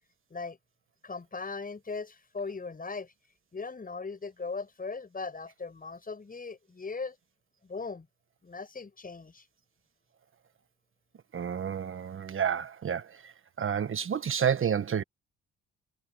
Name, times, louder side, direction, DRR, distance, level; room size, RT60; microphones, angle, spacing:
voice 1, 1.0-3.1 3.5-7.2 7.6-8.1 8.4-9.5, left 4 dB, 30° left, 7.8 m, -38 dB
voice 2, 11.3-13.3 13.6-15.0, right 8 dB, 45° right, 1.3 m, -30 dB
cardioid pair, 90°, 30 cm